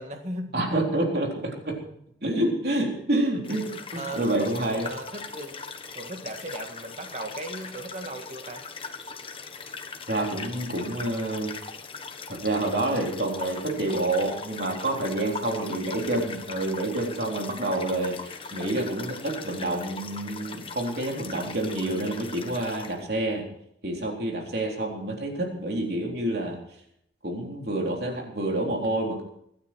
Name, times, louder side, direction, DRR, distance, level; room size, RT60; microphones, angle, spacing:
voice 1, 0.0-0.5 3.9-5.6 6.0-8.6 15.8-16.2, right 1 dB, 40° right, 5 dB, 2.0 m, -37 dB
voice 2, 0.5-1.8 2.2-4.9 10.1-11.6 12.3-23.5 23.8-26.6 27.2-29.2, right 1 dB, 55° right, 0 dB, 3.8 m, -28 dB
sound 1, 3.4-23.0, left 4 dB, 30° left, 1.2 m, -40 dB
24.0 x 9.9 x 4.6 m, 0.73 s
head